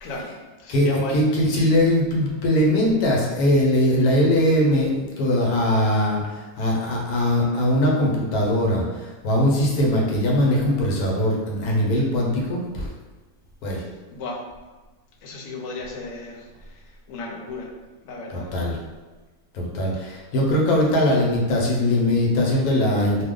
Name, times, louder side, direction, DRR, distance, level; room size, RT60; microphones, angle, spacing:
voice 1, 0.0-1.3 14.1-14.4 15.2-17.7 18.0-18.5, left 2 dB, 70° left, 0 dB, 0.9 m, -34 dB
voice 2, 0.7-12.9 13.6-13.8 18.3-18.8 19.5-23.2, left 1 dB, 90° left, -2 dB, 1.2 m, -21 dB
2.7 x 2.1 x 3.6 m, 1.3 s
omnidirectional pair, 1.5 m